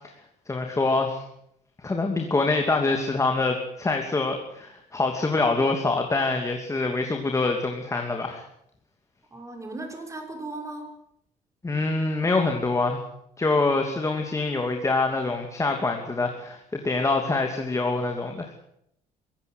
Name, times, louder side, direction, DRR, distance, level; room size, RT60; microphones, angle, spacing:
voice 1, 0.5-1.2 1.8-8.4 11.6-13.0 13.4-18.5, left 3 dB, 20° left, 3 dB, 2.8 m, -25 dB
voice 2, 9.3-11.0, right 2 dB, 20° right, 4 dB, 5.8 m, -37 dB
24.5 x 16.0 x 8.1 m, 0.76 s
cardioid pair, 110°, 17 cm